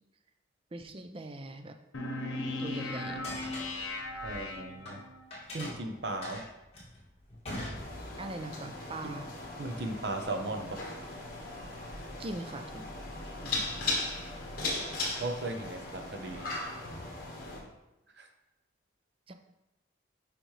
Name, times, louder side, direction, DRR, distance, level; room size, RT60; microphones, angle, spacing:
voice 1, 0.7-1.8 2.6-3.6 8.2-9.3 12.2-12.9 13.4-13.7 19.3-19.4, right 2 dB, 25° right, 6 dB, 0.4 m, -41 dB
sound 1, 1.9-5.2, left 2 dB, 90° left, 0.9 m, -37 dB
sound 2, 3.2-5.0 5.3-8.4, left 1 dB, 30° left, 2.0 m, -42 dB
voice 2, 4.2-5.0 5.5-6.5 9.0-9.1 9.6-10.8 13.5-13.8 15.2-16.6 18.2-18.3, right 2 dB, 55° right, 5 dB, 0.7 m, -37 dB
sound 3, 7.7-17.6, left 2 dB, 45° left, 1.4 m, -38 dB
6.3 x 5.1 x 3.2 m, 0.97 s
head